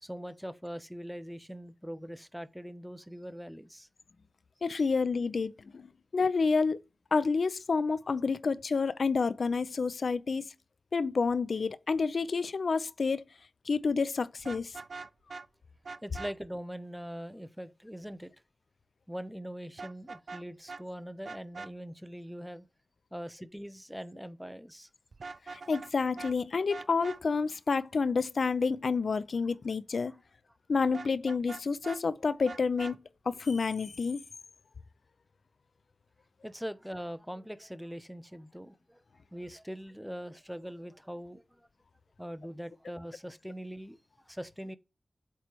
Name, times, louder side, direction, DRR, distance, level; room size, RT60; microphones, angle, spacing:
voice 1, 0.0-3.9 4.8-4.9 16.0-18.3 19.1-22.7 23.1-24.9 26.5-26.7 30.1-30.2 36.4-39.0 39.3-41.7 42.2-44.0 44.3-44.8, equal, ahead, 0.6 m, -42 dB
voice 2, 4.6-6.8 7.1-10.4 10.9-13.2 13.7-14.7 25.5-30.1 30.7-33.0 33.3-34.2, left 4 dB, 80° left, 0.4 m, -29 dB
Vehicle horn car horn honking, 14.4-15.5 15.8-16.3 19.8-20.4 20.7-20.8 21.2-21.7 25.1-25.9 26.2-26.3 26.7-27.2 30.9-32.0 32.4-33.0, right 4 dB, 80° right, 0.4 m, -42 dB
8.2 x 3.2 x 4.5 m
wide cardioid pair, 100°, 0 cm